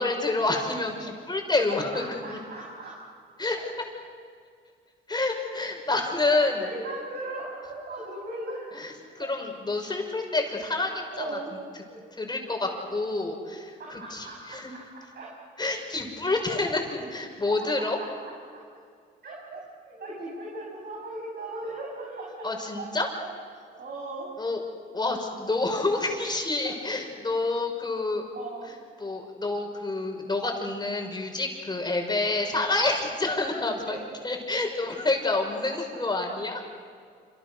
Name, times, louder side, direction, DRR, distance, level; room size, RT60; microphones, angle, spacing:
voice 1, 0.0-2.4 3.4-3.6 5.1-6.6 8.8-11.4 12.2-14.7 15.6-18.0 22.4-23.1 24.4-24.6 24.9-28.3 29.0-34.0 34.2-36.6, left 2 dB, 20° left, 2 dB, 6.0 m, -28 dB
voice 2, 1.7-2.9 6.3-8.7 11.1-11.5 11.9-12.0 13.8-14.8 15.1-15.3 17.8-18.6 19.2-22.5 22.8-23.3 23.7-24.3 26.8-26.9 28.3-28.7 32.1-32.3 33.2-33.3 33.8-34.0 35.3-35.4 35.7-35.8 36.2-36.4, right 2 dB, 50° right, -3 dB, 7.9 m, -38 dB
28.5 x 26.5 x 6.6 m, 2.1 s
cardioid pair, 90°, 20 cm